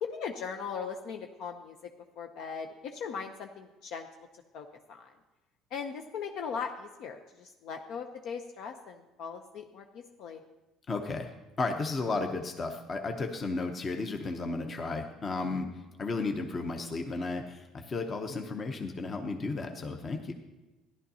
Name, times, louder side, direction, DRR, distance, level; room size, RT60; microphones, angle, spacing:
voice 1, 0.0-1.7 2.2-4.1 4.5-5.1 5.7-10.4, left 6 dB, 65° left, 4 dB, 0.6 m, -39 dB
voice 2, 10.9-11.3 11.6-15.7 16.0-20.3, left 3 dB, 30° left, 5 dB, 0.8 m, -33 dB
14.0 x 11.0 x 2.8 m, 1.1 s
cardioid pair, 130°, 0 cm